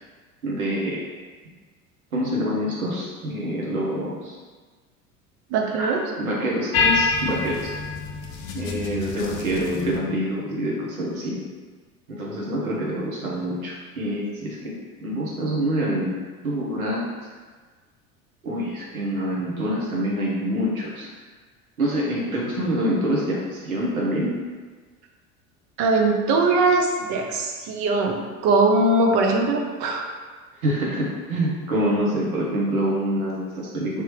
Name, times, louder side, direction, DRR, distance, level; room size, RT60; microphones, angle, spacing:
voice 1, 0.4-1.0 2.1-4.4 5.8-7.7 8.5-11.4 12.1-16.1 16.4-17.1 18.4-21.1 21.8-24.4 30.6-34.0, equal, 80° right, -4 dB, 1.0 m, -26 dB
voice 2, 5.5-6.0 25.8-30.0, right 3 dB, 40° right, 2 dB, 0.6 m, -21 dB
sound 1, 6.7-10.0, left 4 dB, 40° left, 0.5 m, -26 dB
3.7 x 2.8 x 3.1 m, 1.4 s
figure-of-eight pair, 70°, 43 cm